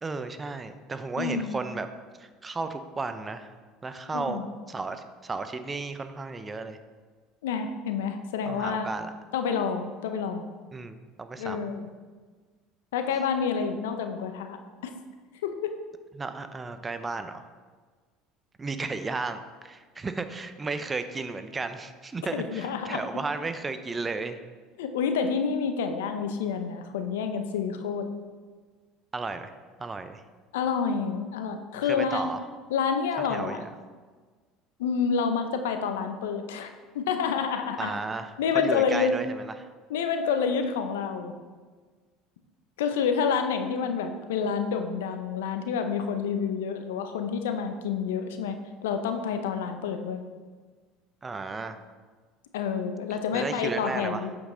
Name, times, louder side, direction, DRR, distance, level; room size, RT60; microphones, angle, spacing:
voice 1, 0.0-1.9 2.2-3.5 3.8-4.4 4.7-6.8 8.5-9.1 10.7-11.7 16.2-17.4 18.6-24.4 29.1-29.5 29.8-30.2 31.8-32.4 33.3-33.7 37.8-38.3 38.6-39.4 51.2-51.8 53.3-54.2, right 3 dB, 25° right, 9 dB, 0.6 m, -34 dB
voice 2, 1.2-1.6 4.1-4.5 7.4-8.9 9.3-10.5 11.4-11.9 12.9-14.9 15.4-15.7 22.3-23.1 24.8-28.1 30.5-32.3 32.7-33.7 34.8-38.0 38.4-39.2 39.9-41.3 42.8-50.3 52.5-54.4, left 6 dB, 85° left, 7 dB, 0.6 m, -28 dB
7.8 x 5.5 x 3.8 m, 1.4 s
hypercardioid pair, 80°, 0 cm